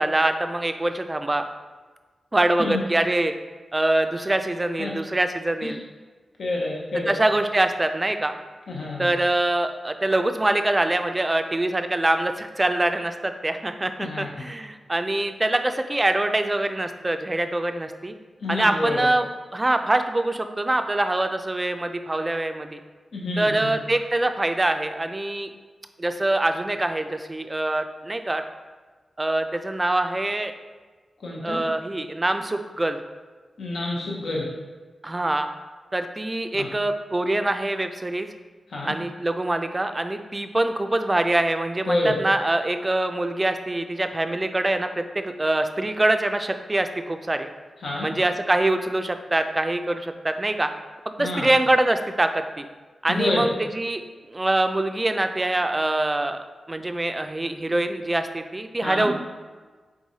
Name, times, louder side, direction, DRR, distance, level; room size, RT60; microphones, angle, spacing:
voice 1, 0.0-1.4 2.3-3.3 3.7-5.8 7.1-8.3 9.0-18.1 18.5-19.3 19.5-22.8 23.4-25.5 26.0-28.4 29.2-30.5 31.4-33.0 35.0-35.5 35.9-38.3 38.8-47.5 48.0-50.7 51.1-52.7 53.0-54.0 54.3-56.4 56.7-59.1, right 2 dB, 25° right, 7 dB, 0.3 m, -24 dB
voice 2, 6.4-7.1 8.7-9.1 14.0-14.3 18.4-19.1 23.1-23.7 31.2-31.6 33.6-34.5 36.5-36.7 38.7-38.9 41.9-42.1 47.8-48.1 51.2-51.5 53.1-53.5 58.8-59.1, left 2 dB, 80° left, -3 dB, 0.8 m, -28 dB
4.6 x 3.7 x 2.8 m, 1.4 s
cardioid pair, 75°, 0 cm